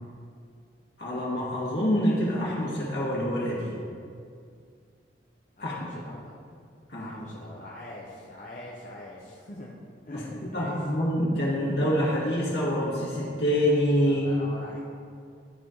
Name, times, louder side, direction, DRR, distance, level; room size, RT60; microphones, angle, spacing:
voice 1, 1.0-3.8 5.6-5.9 6.9-7.1 10.1-14.3, equal, 65° left, -5 dB, 2.0 m, -26 dB
voice 2, 5.6-6.4 7.0-9.8 10.1-10.8 14.0-14.8, left 1 dB, 45° left, -5 dB, 0.7 m, -43 dB
11.0 x 4.3 x 3.9 m, 2.3 s
head